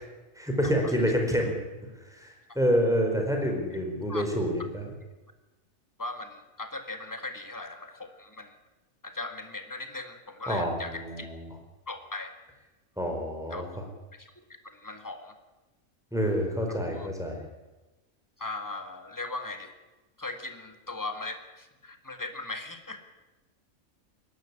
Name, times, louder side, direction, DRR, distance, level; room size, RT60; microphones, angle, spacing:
voice 1, 0.4-1.5 2.2-2.3 2.5-4.9 10.5-11.4 13.0-13.7 16.1-17.4, equal, ahead, 1 dB, 4.7 m, -27 dB
voice 2, 6.0-8.5 9.0-11.3 11.9-12.3 13.5-13.6 14.2-14.3 14.7-15.3 16.9-17.1 18.4-19.7 20.2-23.0, left 2 dB, 15° left, 7 dB, 1.9 m, -38 dB
21.5 x 12.5 x 9.9 m, 1.1 s
omnidirectional pair, 1.4 m